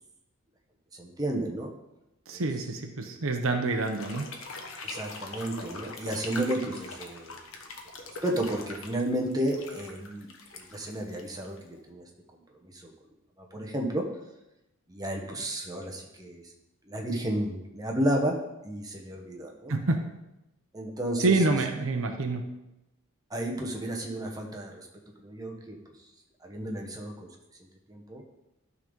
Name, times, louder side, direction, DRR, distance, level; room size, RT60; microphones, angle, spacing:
voice 1, 0.9-1.7 2.3-2.5 3.0-3.2 4.8-7.4 8.2-10.3 10.5-12.0 12.7-12.9 13.5-14.0 14.9-16.4 16.9-18.4 18.6-19.7 20.7-21.5 23.3-24.9 25.2-25.8 26.4-27.3 27.9-28.2, right 1 dB, 15° right, 1 dB, 1.1 m, -32 dB
voice 2, 2.3-4.3 19.7-20.1 21.2-22.5, right 3 dB, 65° right, 5 dB, 0.8 m, -27 dB
sound 1, 3.8-11.8, left 3 dB, 65° left, 1.1 m, -43 dB
12.0 x 4.0 x 5.2 m, 0.91 s
head